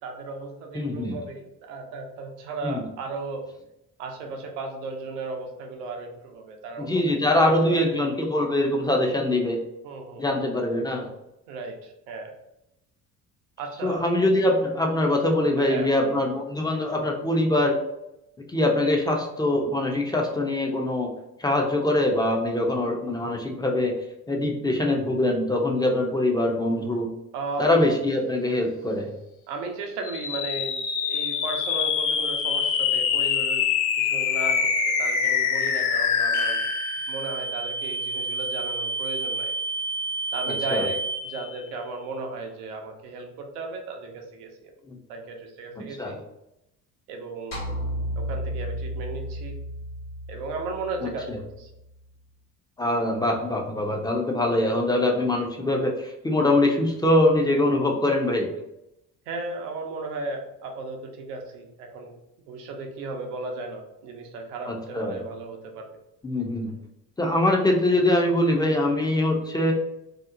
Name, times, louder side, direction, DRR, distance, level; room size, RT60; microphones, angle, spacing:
voice 1, 0.0-3.4 4.0-8.0 9.8-10.3 11.5-12.3 13.6-14.0 15.6-16.2 27.3-28.0 29.5-33.7 34.0-36.6 37.1-39.5 40.3-44.7 45.1-46.2 47.1-47.6 48.2-49.6 50.3-51.7 59.3-62.2 62.5-65.9, right 3 dB, 75° right, 2 dB, 0.7 m, -35 dB
voice 2, 0.7-1.2 2.6-2.8 6.8-9.6 10.2-11.1 13.8-17.8 18.5-21.1 21.4-23.9 24.3-27.1 27.6-29.1 40.7-40.9 44.9-45.0 45.8-46.2 51.0-51.4 52.8-58.5 64.7-65.2 66.2-66.7 67.2-69.7, left 1 dB, 10° left, 1 dB, 0.4 m, -23 dB
sound 1, 30.0-41.5, left 4 dB, 60° left, 0.6 m, -26 dB
sound 2, 47.5-51.9, equal, 80° left, 1.2 m, -33 dB
2.9 x 2.0 x 2.5 m, 0.86 s
hypercardioid pair, 55°, 47 cm